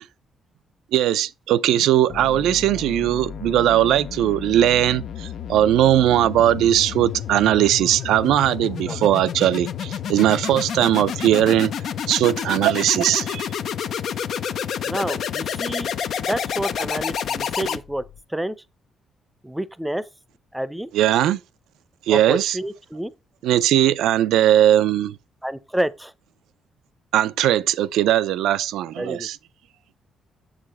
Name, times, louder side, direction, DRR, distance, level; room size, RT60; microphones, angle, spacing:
voice 1, 0.9-11.7 12.1-13.5 20.9-21.4 22.1-22.6 23.4-25.2 27.1-29.4, right 12 dB, 85° right, 0.4 m, -19 dB
sound 1, 2.1-18.2, left 8 dB, 65° left, 0.5 m, -30 dB
voice 2, 14.8-15.9 16.2-18.0 18.3-18.5 19.4-20.1 20.5-20.9 22.1-23.1 25.4-26.1 29.0-29.3, right 1 dB, 5° right, 0.6 m, -28 dB
7.2 x 4.9 x 4.1 m
cardioid pair, 90°, 0 cm